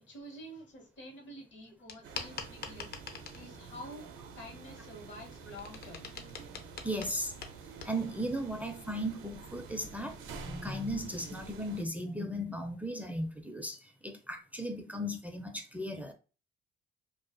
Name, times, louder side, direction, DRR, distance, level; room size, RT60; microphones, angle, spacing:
voice 1, 0.1-2.9 3.3-4.1 4.3-6.1 7.7-7.9, equal, 70° left, 1.1 m, -48 dB
sound 1, 1.9-3.5 5.0-8.0, left 5 dB, 55° left, 0.5 m, -44 dB
sound 2, 2.0-11.8, right 5 dB, 85° right, 0.4 m, -49 dB
voice 2, 6.8-7.3 7.8-16.1, equal, 10° right, 0.4 m, -36 dB
2.4 x 2.3 x 2.4 m
cardioid pair, 90°, 20 cm